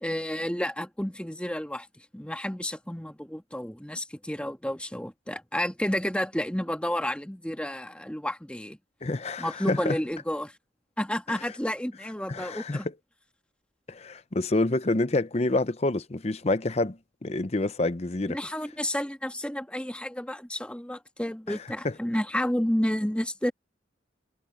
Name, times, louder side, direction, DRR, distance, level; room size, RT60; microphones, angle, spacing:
voice 1, 0.0-1.9 2.1-8.8 9.4-10.5 11.0-12.9 18.3-23.5, equal, 5° left, 1.4 m, -31 dB
voice 2, 9.0-10.0 12.3-12.8 13.9-18.4, left 2 dB, 35° left, 0.7 m, -27 dB
head